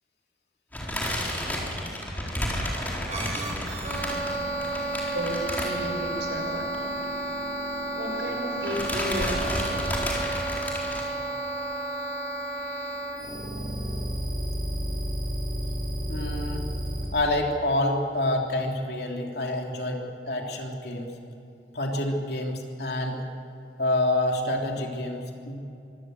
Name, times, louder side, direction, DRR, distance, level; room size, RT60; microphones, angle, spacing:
sound 1, 0.7-6.3 6.6-6.8 7.0-7.1 8.1-8.4 8.6-11.0, equal, 10° left, 4.1 m, -31 dB
sound 2, 3.1-17.1, right 1 dB, 40° right, 7.1 m, -31 dB
voice 1, 5.1-6.7 7.9-10.0, equal, 85° right, 1 dB, 6.1 m, -33 dB
voice 2, 16.1-16.7 17.1-21.1 21.7-23.2 23.8-25.6, left 1 dB, 65° left, 1 dB, 3.3 m, -27 dB
24.5 x 17.5 x 8.0 m, 2.6 s
head